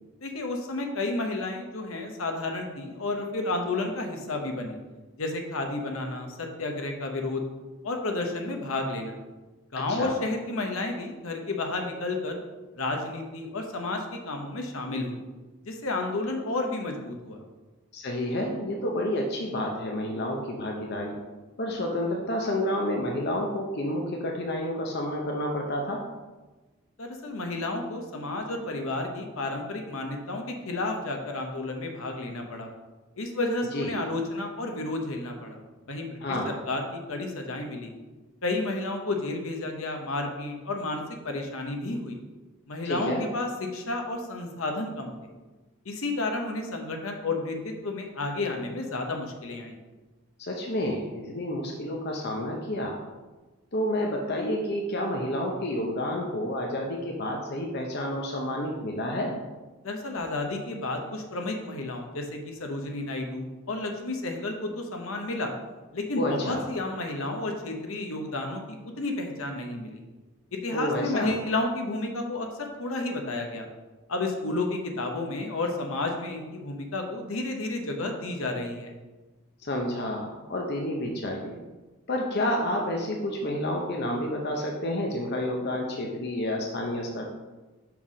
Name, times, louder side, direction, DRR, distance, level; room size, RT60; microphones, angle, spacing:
voice 1, 0.2-4.8 5.2-7.4 7.8-9.2 9.7-12.4 12.7-15.2 15.6-17.4 27.0-32.7 33.2-35.6 35.9-36.2 36.7-37.9 38.4-42.2 42.7-45.1 45.8-49.8 59.8-65.5 65.9-70.0 70.5-73.7 74.1-78.9, left 2 dB, 70° left, 3 dB, 1.0 m, -31 dB
voice 2, 9.7-10.1 17.9-21.2 21.6-26.0 33.7-33.9 36.2-36.5 42.8-43.3 50.4-53.0 53.7-59.3 66.1-66.6 70.7-71.3 79.6-81.6 82.1-87.2, left 1 dB, 50° left, 0 dB, 0.7 m, -29 dB
5.6 x 4.6 x 5.0 m, 1.2 s
head